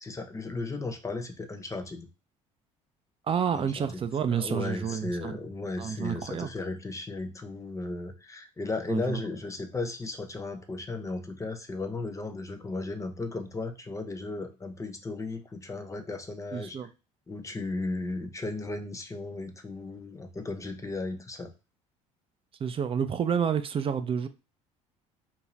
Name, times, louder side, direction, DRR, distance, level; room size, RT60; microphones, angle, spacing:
voice 1, 0.0-2.1 3.5-16.8 17.3-21.5, left 3 dB, 20° left, 0.7 m, -35 dB
voice 2, 3.3-5.4 5.8-6.5 8.9-9.2 16.5-16.9 22.6-24.3, right 7 dB, 35° right, 0.4 m, -29 dB
2.6 x 2.3 x 3.1 m
hypercardioid pair, 70°, 17 cm